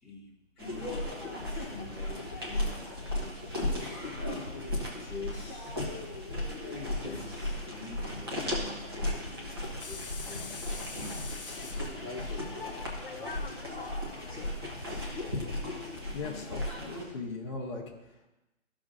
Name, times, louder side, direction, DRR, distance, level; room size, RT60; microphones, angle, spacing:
voice 1, 0.0-3.5 4.2-5.8 6.9-11.3 11.8-12.5, left 2 dB, ahead, -15 dB, 1.2 m, -47 dB
sound 1, 0.6-17.0, left 1 dB, 20° right, 1.0 m, -36 dB
sound 2, 9.8-15.4, left 5 dB, 45° left, 0.4 m, -45 dB
voice 2, 16.1-18.3, left 3 dB, 20° left, -5 dB, 1.1 m, -39 dB
13.5 x 6.2 x 2.5 m, 0.99 s
hypercardioid pair, 170°, 40 cm